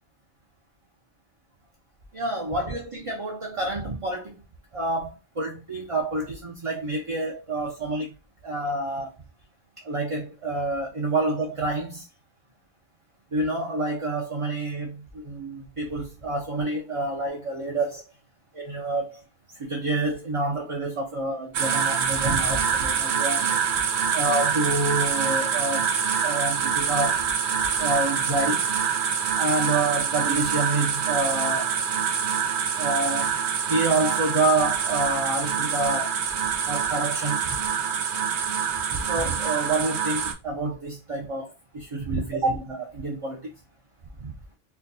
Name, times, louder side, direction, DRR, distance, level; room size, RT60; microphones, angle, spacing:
voice 1, 2.1-4.3 4.7-8.1 8.4-9.2 9.8-12.0 13.3-18.0 18.5-19.2 19.6-23.6 24.1-25.9 26.2-27.2 27.8-28.7 29.4-31.7 32.8-33.3 33.7-36.1 36.7-37.4 38.9-43.5 44.2-44.3, right 2 dB, 35° right, 0.6 m, -28 dB
sound 1, 21.5-40.3, right 7 dB, 70° right, 0.9 m, -25 dB
4.3 x 2.2 x 2.7 m
omnidirectional pair, 1.2 m